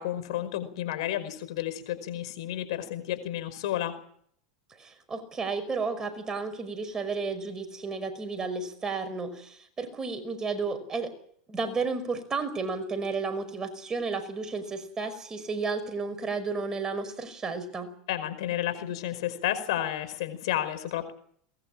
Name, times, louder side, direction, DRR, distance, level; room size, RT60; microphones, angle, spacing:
voice 1, 0.0-3.9 18.1-21.1, left 12 dB, 75° left, 11 dB, 5.1 m, -31 dB
voice 2, 4.8-11.1 11.5-17.9, right 4 dB, 20° right, 9 dB, 5.3 m, -32 dB
23.0 x 20.5 x 7.6 m, 0.63 s
hypercardioid pair, 100°, 3 cm